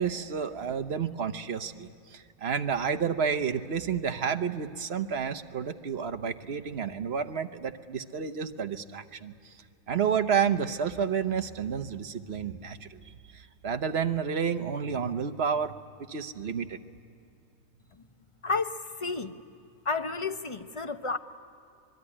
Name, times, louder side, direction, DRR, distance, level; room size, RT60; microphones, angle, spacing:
voice 1, 0.0-9.5 9.9-13.0 13.3-15.8 16.1-16.8, right 7 dB, 50° right, 9 dB, 1.1 m, -30 dB
voice 2, 18.4-19.3 19.9-21.2, left 4 dB, 30° left, 9 dB, 0.6 m, -31 dB
25.0 x 22.0 x 9.9 m, 2.6 s
omnidirectional pair, 1.6 m